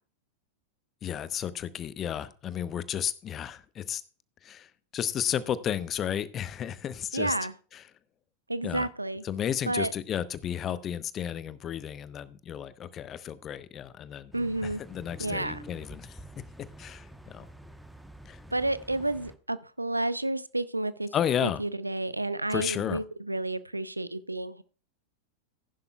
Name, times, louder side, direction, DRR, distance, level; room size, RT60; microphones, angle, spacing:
voice 1, 1.0-4.0 4.4-7.4 7.7-7.8 8.6-8.9 9.2-14.3 14.6-16.2 16.8-17.5 18.3-18.4 21.1-21.6 22.5-23.0, left 9 dB, 30° left, 0.8 m, -33 dB
voice 2, 7.1-7.5 8.5-9.2 9.7-9.9 14.3-14.8 15.2-15.6 18.5-21.1 21.4-24.6, right 2 dB, 85° right, 0.5 m, -30 dB
sound 1, 14.3-19.4, right 1 dB, ahead, 1.0 m, -48 dB
15.0 x 11.0 x 2.3 m
figure-of-eight pair, 90°, 0 cm